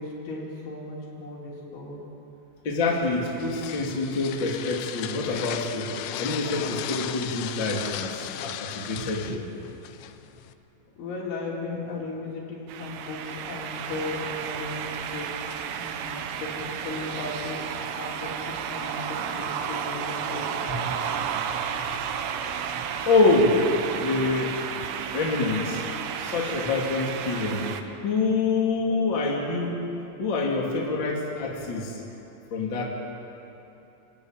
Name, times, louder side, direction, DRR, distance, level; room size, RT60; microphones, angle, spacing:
voice 1, 0.0-2.0 11.0-15.4 15.7-17.6 18.0-20.9, left 3 dB, 65° left, -4 dB, 6.7 m, -36 dB
voice 2, 2.6-5.9 6.2-9.5 20.7-21.8 22.4-22.6 23.0-23.7 23.9-24.6 25.1-27.7 28.0-29.8 30.2-32.0 32.5-32.8, left 3 dB, 30° left, -1 dB, 2.5 m, -26 dB
sound 1, 3.0-10.5, left 12 dB, 85° left, 3.4 m, -36 dB
sound 2, 12.7-27.8, right 8 dB, 70° right, 2.8 m, -32 dB
29.0 x 15.5 x 9.1 m, 2.9 s
omnidirectional pair, 5.9 m